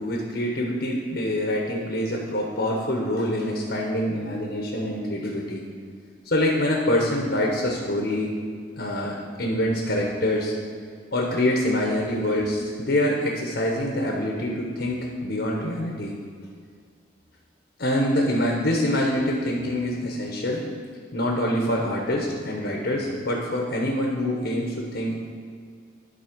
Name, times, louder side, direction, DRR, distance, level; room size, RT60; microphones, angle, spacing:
voice 1, 0.0-5.6 6.2-8.3 8.8-10.5 11.1-16.1 17.8-20.6 21.1-25.2, left 1 dB, 60° left, -1 dB, 1.0 m, -25 dB
11.0 x 4.1 x 5.2 m, 2.1 s
head